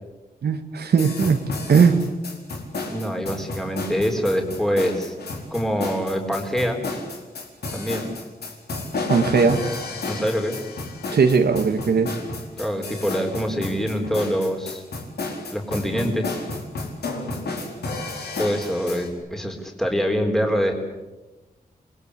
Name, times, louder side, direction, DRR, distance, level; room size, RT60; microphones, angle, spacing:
voice 1, 0.4-1.4 1.7-2.0 9.1-9.6 11.1-12.1, right 5 dB, 85° right, 6 dB, 2.0 m, -18 dB
sound 1, 0.9-19.1, left 3 dB, 85° left, 4.8 m, -32 dB
voice 2, 2.9-5.1 5.5-6.8 7.7-8.1 10.1-10.6 12.6-14.8 15.5-16.4 18.4-20.7, equal, ahead, 2 dB, 4.2 m, -24 dB
28.0 x 21.0 x 8.5 m, 1.1 s
wide cardioid pair, 90°, 16 cm